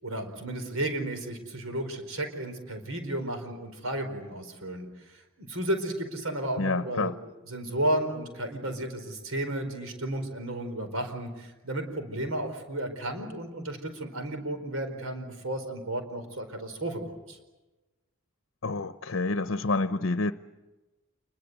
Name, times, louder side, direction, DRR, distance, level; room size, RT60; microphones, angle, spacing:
voice 1, 0.0-4.9 5.1-7.1 7.5-17.0 17.3-17.4, right 1 dB, 80° right, 7 dB, 4.6 m, -33 dB
voice 2, 6.6-7.1 18.6-20.3, left 3 dB, 65° left, 11 dB, 0.8 m, -28 dB
28.0 x 22.0 x 8.1 m, 1.1 s
head